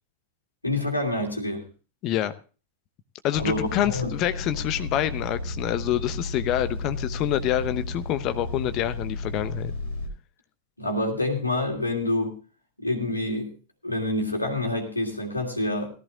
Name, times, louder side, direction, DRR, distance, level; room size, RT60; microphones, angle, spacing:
voice 1, 0.6-1.6 3.4-4.1 10.8-12.4 12.8-13.5 13.8-15.9, left 2 dB, 85° left, 2 dB, 2.6 m, -27 dB
voice 2, 3.2-9.7, left 12 dB, 40° left, 13 dB, 0.9 m, -27 dB
sound 1, 3.3-10.1, left 2 dB, 55° left, 4.0 m, -33 dB
18.0 x 14.0 x 2.5 m, 0.34 s
figure-of-eight pair, 90°, 0 cm